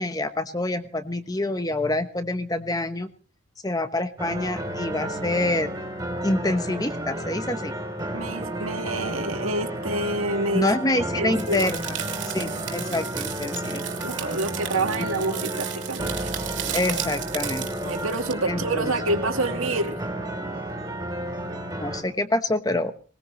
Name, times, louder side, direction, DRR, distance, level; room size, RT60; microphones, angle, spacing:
voice 1, 0.0-3.1 3.6-5.7 6.2-7.7 10.5-12.0 12.2-13.8 15.0-15.1 16.7-17.7 18.5-19.2 21.8-22.9, left 1 dB, 20° left, 10 dB, 1.1 m, -26 dB
sound 1, 4.2-22.0, right 1 dB, 15° right, 3.4 m, -32 dB
voice 2, 8.1-10.7 11.2-11.7 14.0-16.1 17.8-20.0, right 2 dB, 85° right, 4 dB, 2.2 m, -27 dB
sound 2, 11.4-18.3, right 12 dB, 60° right, 2.6 m, -35 dB
20.0 x 20.0 x 3.2 m, 0.40 s
head